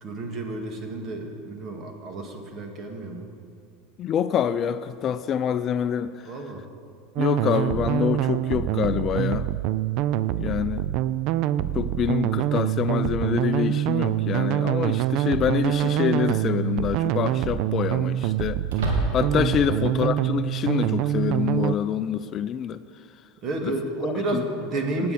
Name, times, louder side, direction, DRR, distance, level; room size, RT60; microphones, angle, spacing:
voice 1, 0.0-3.3 6.2-6.6 10.4-10.7 19.6-19.9 23.4-25.1, right 2 dB, 45° right, 3 dB, 2.0 m, -31 dB
voice 2, 4.0-6.1 7.2-9.5 10.4-10.8 11.7-18.6 19.1-22.8 23.6-23.7 24.3-24.4, left 8 dB, 40° left, 13 dB, 0.4 m, -26 dB
sound 1, 7.2-21.7, right 12 dB, 60° right, 0.4 m, -25 dB
sound 2, 14.1-14.2 16.0-16.4 16.8-16.9 18.6-19.5, right 1 dB, 80° right, 2.6 m, -28 dB
18.5 x 8.7 x 4.2 m, 2.3 s
hypercardioid pair, 100°, 0 cm